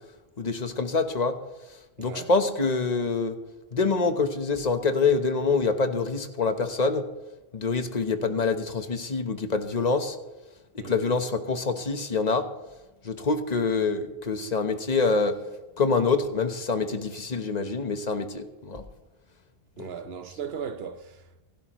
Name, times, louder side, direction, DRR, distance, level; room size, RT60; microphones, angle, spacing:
voice 1, 0.4-1.4 2.0-3.4 3.7-7.0 7.5-10.2 10.7-12.5 13.0-15.4 15.8-18.8 19.8-19.9, left 4 dB, 40° left, 1.1 m, -26 dB
voice 2, 2.0-2.3 10.8-11.0 19.8-21.4, right 7 dB, 70° right, 0.9 m, -37 dB
26.5 x 12.0 x 3.1 m
omnidirectional pair, 1.1 m